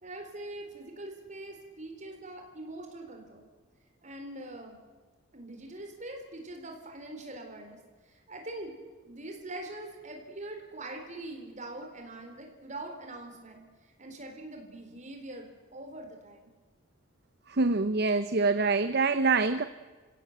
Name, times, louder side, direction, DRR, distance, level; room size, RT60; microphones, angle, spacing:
voice 1, 0.0-3.5 4.0-4.8 5.3-7.8 8.1-8.7 9.1-13.6 14.0-16.5, right 2 dB, 35° right, 3 dB, 4.0 m, -43 dB
voice 2, 17.5-19.6, right 3 dB, 50° right, 11 dB, 0.7 m, -25 dB
28.5 x 16.5 x 8.0 m, 1.3 s
head